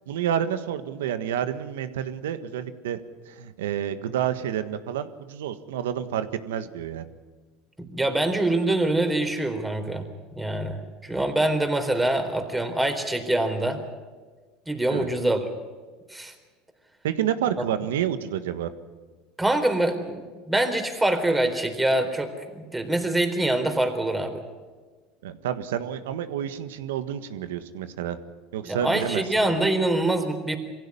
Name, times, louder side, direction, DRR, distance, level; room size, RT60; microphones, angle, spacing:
voice 1, 0.1-3.0 3.3-7.1 14.9-15.1 17.0-18.7 25.2-28.2 28.5-29.2, right 10 dB, 90° right, 11 dB, 1.5 m, -29 dB
voice 2, 7.8-10.1 10.4-13.8 14.7-15.4 16.1-16.3 19.4-24.4 28.6-30.6, right 1 dB, 10° right, 5 dB, 4.0 m, -25 dB
23.5 x 16.0 x 9.9 m, 1.4 s
supercardioid pair, 105°, 0 cm